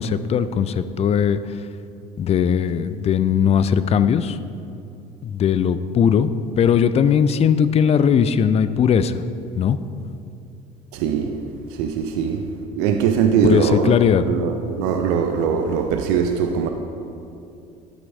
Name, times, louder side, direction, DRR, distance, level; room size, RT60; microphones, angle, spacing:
voice 1, 0.0-1.4 2.2-4.4 5.2-6.3 6.6-9.2 9.6-9.8 13.4-14.3, left 7 dB, 30° left, 0.4 m, -18 dB
voice 2, 10.9-11.4 11.8-12.4 12.8-14.0 14.3-16.7, right 7 dB, 65° right, 0.6 m, -21 dB
11.5 x 7.5 x 2.7 m
hypercardioid pair, 60°, 20 cm